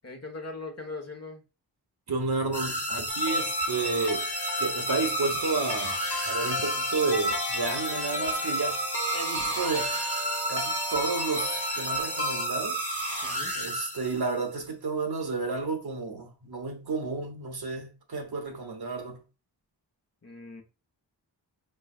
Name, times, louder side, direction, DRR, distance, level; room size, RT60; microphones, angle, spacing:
voice 1, 0.0-1.4 13.2-13.5 20.2-20.6, left 3 dB, 35° left, 1.3 m, -40 dB
voice 2, 2.1-4.3 4.6-8.8 9.1-10.0 10.5-12.8 13.6-19.2, right 4 dB, 55° right, 1.2 m, -31 dB
sound 1, 2.5-14.4, right 1 dB, 15° left, 1.6 m, -32 dB
sound 2, 3.1-12.5, left 2 dB, 55° left, 1.0 m, -34 dB
4.6 x 3.2 x 2.4 m
cardioid pair, 45°, 44 cm